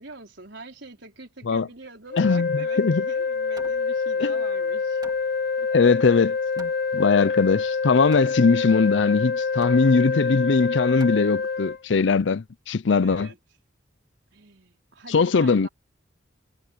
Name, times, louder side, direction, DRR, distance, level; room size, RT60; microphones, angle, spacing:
voice 1, 0.0-5.0 5.6-5.7 13.0-13.4 14.3-15.7, right 2 dB, 65° right, 4.7 m, -44 dB
Hammer, 1.6-11.8, right 2 dB, 20° right, 2.2 m, -51 dB
sound 1, 2.1-11.8, left 5 dB, 45° left, 0.9 m, -26 dB
voice 2, 2.2-3.0 4.2-4.3 5.7-13.3 15.1-15.7, left 4 dB, 65° left, 0.5 m, -21 dB
head